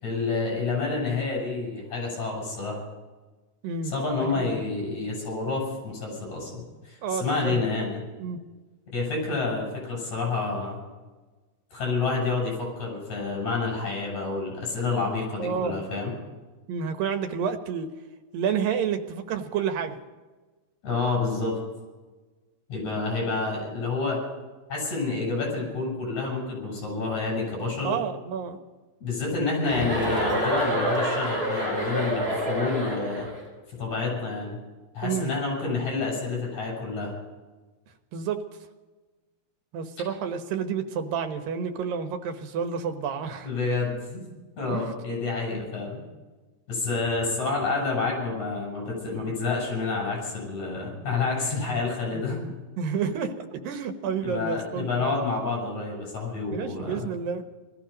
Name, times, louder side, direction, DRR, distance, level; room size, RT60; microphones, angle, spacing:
voice 1, 0.0-2.8 3.8-8.0 8.9-10.8 11.7-16.1 20.8-21.5 22.7-24.2 24.7-27.9 29.0-33.3 33.8-34.6 34.9-37.1 43.4-44.2 44.6-46.0 46.7-52.4 54.2-57.0, left 3 dB, 55° left, -2 dB, 8.2 m, -29 dB
voice 2, 7.0-7.6 8.2-8.4 15.4-15.8 16.7-17.9 18.3-20.0 27.8-28.6 35.0-35.3 38.1-38.4 39.7-43.5 44.7-44.9 45.5-45.6 52.1-55.2 56.5-57.4, right 6 dB, 80° right, 7 dB, 2.9 m, -30 dB
Chuckle chortle, 29.6-33.4, equal, 15° right, 7.2 m, -27 dB
19.5 x 14.0 x 5.2 m, 1.2 s
omnidirectional pair, 4.0 m